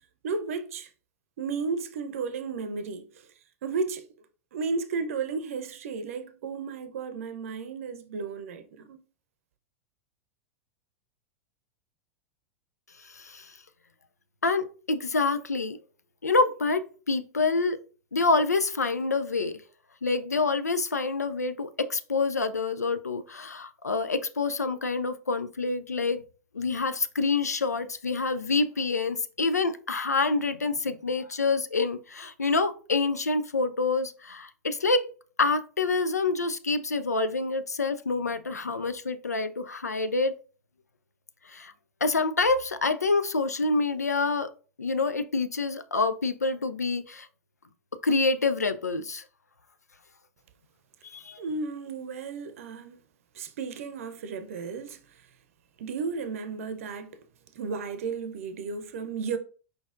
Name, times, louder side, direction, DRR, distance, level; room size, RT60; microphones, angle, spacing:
voice 1, 0.2-0.9 1.4-3.0 3.6-4.0 4.5-9.0 51.4-53.0 53.3-55.0 55.8-57.1 57.5-59.4, right 4 dB, 60° right, 0.7 m, -33 dB
voice 2, 13.0-13.6 14.4-15.8 16.2-17.8 18.1-19.6 20.0-26.2 26.5-35.1 35.4-40.4 41.5-41.7 42.0-44.5 44.8-47.3 48.0-49.2 51.0-51.4, left 3 dB, 80° left, 0.4 m, -27 dB
4.7 x 4.0 x 2.4 m
figure-of-eight pair, 90°, 9 cm